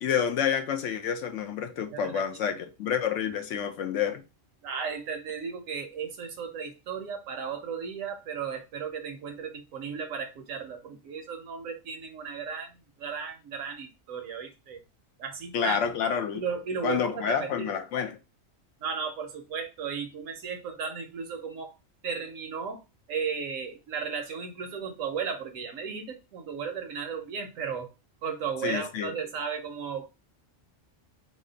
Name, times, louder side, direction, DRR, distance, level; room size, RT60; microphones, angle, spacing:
voice 1, 0.0-4.2 15.5-16.4 16.8-18.2 28.6-29.1, left 8 dB, 70° left, 0.9 m, -29 dB
voice 2, 1.9-2.2 4.6-14.8 15.2-15.8 16.3-17.7 18.8-21.7 22.0-22.8 23.1-27.9 28.2-30.1, right 6 dB, 90° right, 1.1 m, -35 dB
4.1 x 2.0 x 3.8 m
omnidirectional pair, 1.3 m